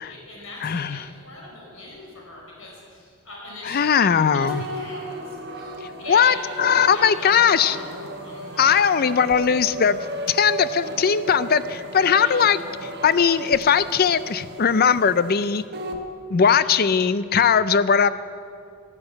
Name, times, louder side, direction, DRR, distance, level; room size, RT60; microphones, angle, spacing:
voice 1, 0.0-4.1 4.7-8.9 12.0-12.4 16.5-16.7, left 2 dB, 80° left, -2 dB, 4.5 m, -41 dB
voice 2, 0.6-1.0 3.6-4.6 6.1-7.8 8.6-10.0 10.3-15.6 16.3-18.1, left 7 dB, 45° left, 15 dB, 0.5 m, -19 dB
sound 1, 4.4-16.0, right 1 dB, 50° right, 1.3 m, -35 dB
13.0 x 12.0 x 8.2 m, 2.4 s
head